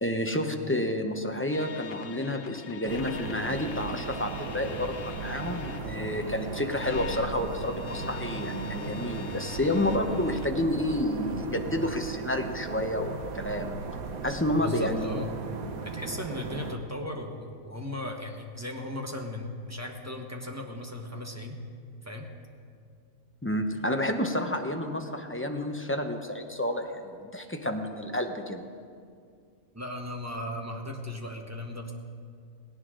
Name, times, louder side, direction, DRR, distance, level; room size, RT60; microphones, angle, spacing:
voice 1, 0.0-13.8 14.2-15.2 23.4-28.7, left 1 dB, 15° left, 4 dB, 0.6 m, -30 dB
sound 1, 1.5-10.5, left 6 dB, 50° left, 0.8 m, -43 dB
sound 2, 2.9-16.8, right 4 dB, 75° right, 1.4 m, -37 dB
voice 2, 14.6-15.3 15.8-21.6 22.0-22.3 29.7-31.9, left 1 dB, 10° right, 2 dB, 1.1 m, -37 dB
18.0 x 17.5 x 3.8 m, 2.2 s
omnidirectional pair, 1.5 m